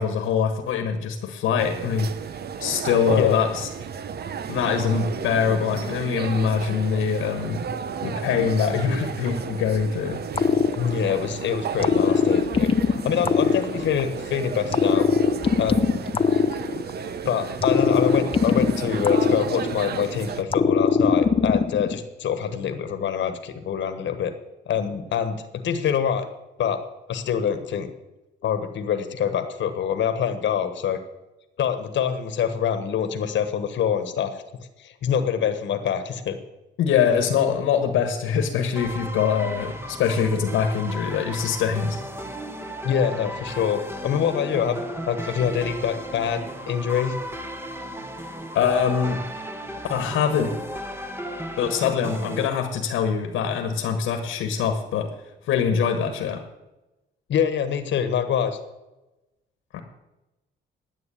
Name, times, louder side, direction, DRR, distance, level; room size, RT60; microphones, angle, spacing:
voice 1, 0.0-2.1 2.6-3.7 4.5-7.7 8.0-10.2 36.8-42.0 48.5-49.2 49.9-50.5 51.6-55.1 55.5-56.4 59.7-59.8, left 7 dB, 90° left, 6 dB, 1.5 m, -23 dB
sound 1, 1.6-20.4, right 7 dB, 55° right, 0.9 m, -33 dB
sound 2, 10.3-11.3 11.8-14.2 14.7-17.1 17.6-20.0 20.5-22.0, left 5 dB, 25° left, 0.6 m, -21 dB
voice 2, 10.8-15.1 15.6-16.0 17.2-24.3 24.7-26.3 26.6-26.8 27.1-27.9 28.4-31.0 31.6-34.3 34.8-36.4 42.8-47.1 57.3-58.6, left 8 dB, 65° left, 9 dB, 1.3 m, -25 dB
sound 3, 38.8-52.5, equal, 10° right, 1.4 m, -35 dB
10.0 x 7.8 x 9.7 m, 1.0 s
cardioid pair, 90°, 20 cm